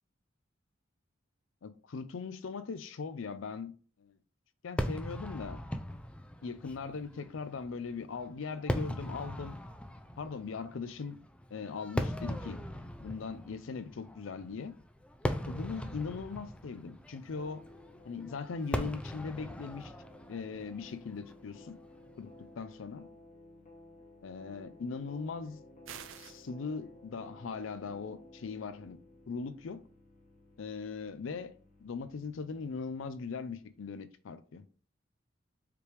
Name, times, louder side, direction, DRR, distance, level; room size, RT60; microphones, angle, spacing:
voice 1, 1.6-3.7 4.0-4.2 4.6-5.6 6.4-9.6 10.2-11.2 11.5-12.6 13.0-14.7 15.5-17.6 18.0-19.9 20.3-21.8 22.2-22.3 22.6-23.0 24.2-25.6 26.2-29.0 29.3-29.8 30.6-31.5 31.8-34.6, left 5 dB, 75° left, 0.5 m, -40 dB
Fireworks, 4.8-22.1, equal, 5° left, 0.4 m, -40 dB
sound 1, 17.3-34.0, left 1 dB, 40° left, 1.1 m, -56 dB
sound 2, 25.9-26.5, right 8 dB, 75° right, 0.5 m, -46 dB
4.9 x 3.4 x 3.1 m
head